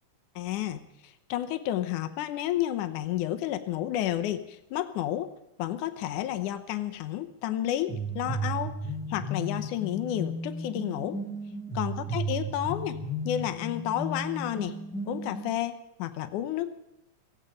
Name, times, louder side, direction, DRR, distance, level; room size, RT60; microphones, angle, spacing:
voice 1, 0.4-5.3 5.6-8.8 9.1-11.2 11.7-13.0 13.3-14.8 15.1-16.7, left 12 dB, 85° left, 8 dB, 2.4 m, -31 dB
sound 1, 7.9-15.5, right 1 dB, ahead, 0.9 m, -34 dB
17.0 x 16.5 x 5.2 m, 0.86 s
omnidirectional pair, 3.5 m